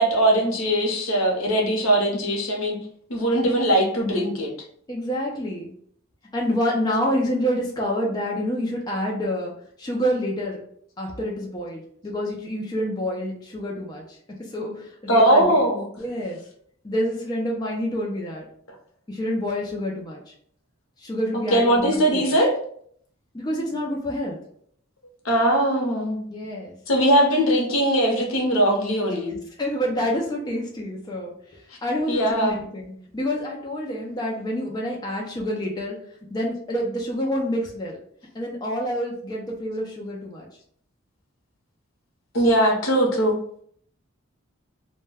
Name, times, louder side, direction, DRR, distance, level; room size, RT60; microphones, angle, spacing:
voice 1, 0.0-2.8 3.1-4.5 15.1-15.8 21.3-22.6 25.2-26.2 26.9-29.3 32.1-32.6 42.3-43.4, right 1 dB, 75° left, 1 dB, 0.7 m, -20 dB
voice 2, 4.9-5.7 6.3-9.5 9.8-10.6 11.0-14.0 14.4-15.6 16.0-16.4 16.8-18.4 19.1-20.2 21.0-22.2 23.3-24.4 26.3-26.7 29.6-31.3 31.8-36.0 36.3-38.0 38.3-40.5, equal, 20° left, -2 dB, 0.4 m, -27 dB
2.2 x 2.1 x 3.3 m, 0.62 s
head